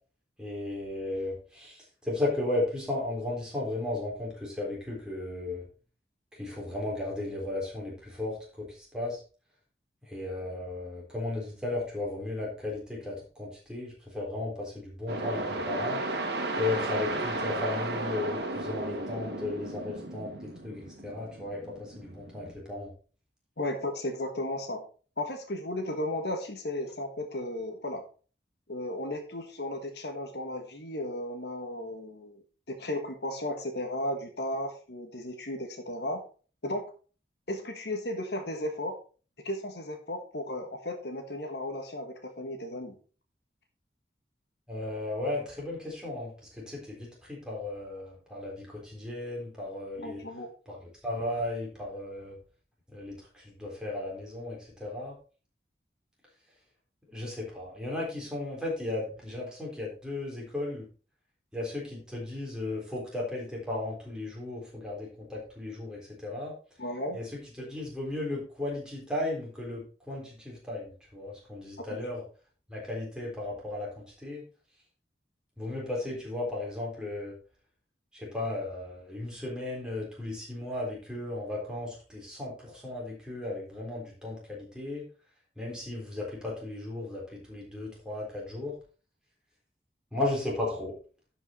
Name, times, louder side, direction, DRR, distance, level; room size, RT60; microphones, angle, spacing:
voice 1, 0.4-5.6 6.3-9.2 10.1-16.0 16.5-22.9 44.7-50.2 50.7-50.8 51.0-52.4 52.9-55.1 57.1-60.8 61.5-66.5 67.1-67.2 67.6-72.2 72.7-74.4 75.6-77.3 78.1-85.0 85.6-88.7 90.1-90.9, left 2 dB, 5° right, -4 dB, 3.7 m, -35 dB
sound 1, 15.1-22.5, right 2 dB, 65° right, 1.8 m, -34 dB
voice 2, 23.6-24.8 25.2-28.0 28.7-32.4 32.7-36.2 36.6-36.9 37.5-39.0 39.4-43.0 50.0-50.5 66.8-67.2 71.9-72.0, left 1 dB, 65° left, 5 dB, 1.5 m, -35 dB
11.5 x 5.5 x 4.2 m, 0.38 s
head